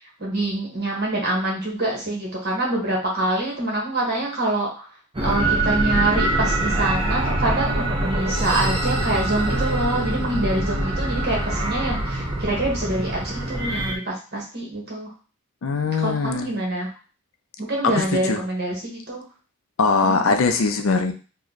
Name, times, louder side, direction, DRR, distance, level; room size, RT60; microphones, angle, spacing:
voice 1, 0.2-4.9 5.2-13.2 13.5-15.1 16.0-16.9 17.6-19.2 20.0-20.3, right 1 dB, 45° right, -2 dB, 1.3 m, -25 dB
sound 1, 5.1-14.0, right 2 dB, 25° right, 0.5 m, -24 dB
voice 2, 15.6-16.5 17.8-18.4 19.8-21.1, left 4 dB, 65° left, 6 dB, 0.4 m, -21 dB
3.0 x 2.2 x 3.9 m, 0.35 s
head